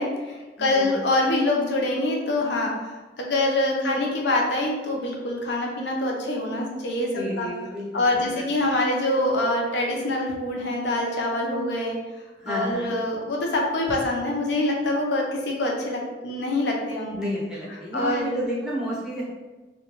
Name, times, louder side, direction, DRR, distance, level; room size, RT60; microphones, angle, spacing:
voice 1, 0.0-7.5 7.9-12.0 12.5-17.2 17.9-18.4, left 1 dB, 75° left, 0 dB, 0.5 m, -25 dB
voice 2, 0.6-1.0 3.8-4.0 7.1-8.4 12.4-12.9 17.1-19.2, equal, 5° right, -7 dB, 0.6 m, -31 dB
2.2 x 2.2 x 2.9 m, 1.2 s
head